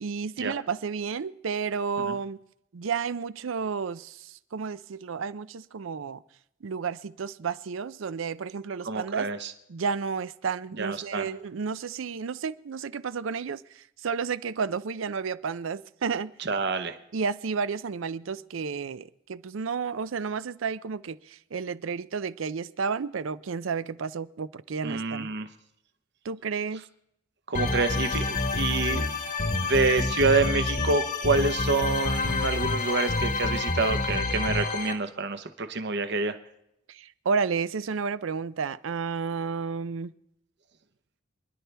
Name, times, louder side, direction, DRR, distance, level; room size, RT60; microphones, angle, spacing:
voice 1, 0.0-2.4 2.7-6.2 6.6-9.3 9.7-16.3 17.1-25.3 26.2-26.8 36.9-40.1, right 5 dB, 75° right, 0.5 m, -31 dB
voice 2, 8.8-9.5 10.8-11.3 16.4-17.0 24.8-25.5 27.5-29.1 29.6-36.3, right 3 dB, 60° right, 1.0 m, -27 dB
sound 1, 27.5-34.9, left 3 dB, 40° left, 1.2 m, -28 dB
27.0 x 11.0 x 3.4 m
head